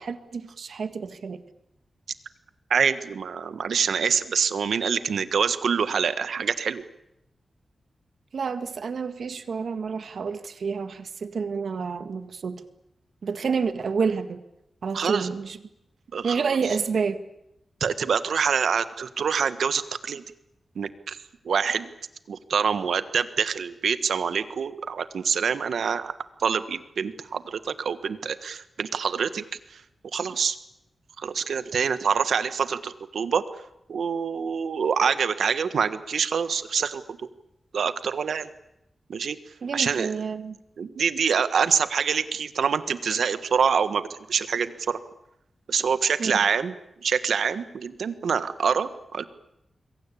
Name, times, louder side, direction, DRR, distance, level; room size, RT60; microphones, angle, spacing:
voice 1, 0.0-1.4 8.3-12.6 13.2-14.4 14.8-15.6 16.2-17.2 39.6-40.6 46.2-46.3, right 5 dB, 70° right, 11 dB, 1.8 m, -29 dB
voice 2, 2.7-6.8 14.9-15.3 16.1-16.4 17.8-20.2 20.7-21.2 21.4-21.9 22.3-26.1 26.4-29.4 29.7-29.8 30.1-30.6 31.2-33.4 33.9-37.2 37.7-38.5 39.1-39.4 39.7-40.1 40.8-44.0 44.3-45.0 45.7-46.7 47.0-49.2, right 6 dB, 90° right, 13 dB, 1.4 m, -25 dB
26.5 x 23.0 x 8.5 m, 0.83 s
wide cardioid pair, 135°, 0 cm